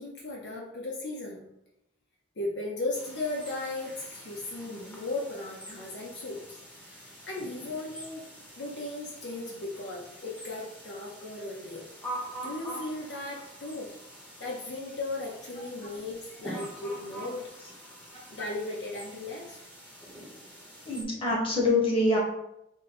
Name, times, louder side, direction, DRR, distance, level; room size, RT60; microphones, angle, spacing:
voice 1, 0.0-1.4 2.4-6.6 6.9-8.3 8.6-11.9 12.2-13.9 14.4-17.5 18.3-19.6, left 2 dB, 70° left, -2 dB, 0.7 m, -36 dB
sound 1, 2.9-21.0, right 1 dB, 10° left, 0.9 m, -45 dB
voice 2, 20.8-22.2, left 2 dB, 30° left, -3 dB, 1.3 m, -25 dB
5.2 x 2.1 x 4.2 m, 0.83 s
head